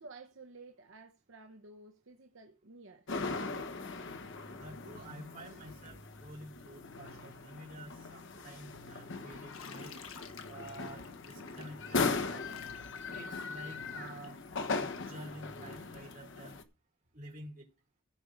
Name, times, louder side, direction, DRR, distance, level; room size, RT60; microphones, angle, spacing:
voice 1, 0.0-3.1, right 3 dB, 65° right, 1.0 m, -53 dB
sound 1, 3.1-16.6, left 3 dB, 65° left, 1.2 m, -39 dB
voice 2, 4.6-9.9 10.5-12.6 13.1-14.4 14.8-16.6 17.1-17.7, right 1 dB, 40° right, 3.9 m, -50 dB
Bathtub (filling or washing), 9.5-15.2, left 7 dB, 90° left, 1.4 m, -53 dB
15.5 x 5.3 x 5.1 m
head